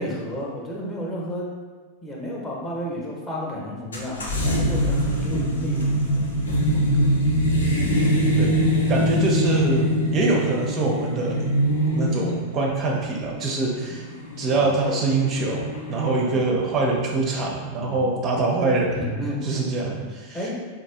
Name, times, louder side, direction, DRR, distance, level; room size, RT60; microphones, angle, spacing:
voice 1, 0.0-1.5 2.0-7.1 14.5-14.8 16.2-16.4 17.7-18.1 18.9-20.0 20.3-20.5, equal, 20° left, -3 dB, 0.7 m, -33 dB
sound 1, 3.9-16.1, equal, 70° left, 0.4 m, -23 dB
voice 2, 8.9-11.5 11.9-14.0 14.4-19.1 19.4-20.5, right 3 dB, 30° right, -1 dB, 0.5 m, -24 dB
4.0 x 2.4 x 2.3 m, 1.4 s
figure-of-eight pair, 90°, 0 cm